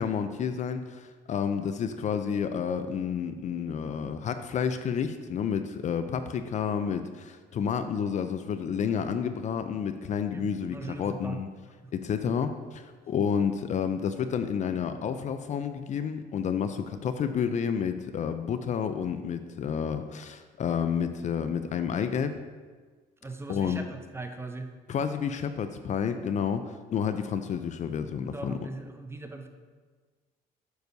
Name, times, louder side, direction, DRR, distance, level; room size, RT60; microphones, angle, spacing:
voice 1, 0.0-11.5 11.9-22.4 23.5-23.8 24.9-28.6, left 7 dB, 45° left, 9 dB, 0.4 m, -30 dB
voice 2, 10.3-11.4 23.2-24.7 28.3-29.5, right 3 dB, 15° right, 6 dB, 0.6 m, -40 dB
9.1 x 6.6 x 2.7 m, 1.4 s
cardioid pair, 110°, 17 cm